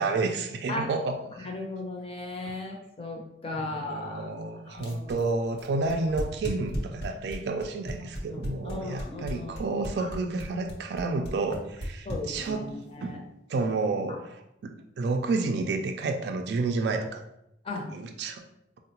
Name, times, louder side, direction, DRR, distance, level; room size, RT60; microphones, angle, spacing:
voice 1, 0.0-1.5 3.6-13.2 13.5-14.4 14.6-17.2 17.9-18.4, right 3 dB, 65° right, 5 dB, 0.3 m, -30 dB
voice 2, 1.3-4.3 4.7-5.1 8.3-9.5 10.0-10.1 12.0-13.2 14.1-14.2 17.6-17.9, left 2 dB, 35° left, 0 dB, 0.6 m, -36 dB
sound 1, 4.8-12.7, equal, 70° left, 0.8 m, -35 dB
3.6 x 2.0 x 2.8 m, 0.81 s
head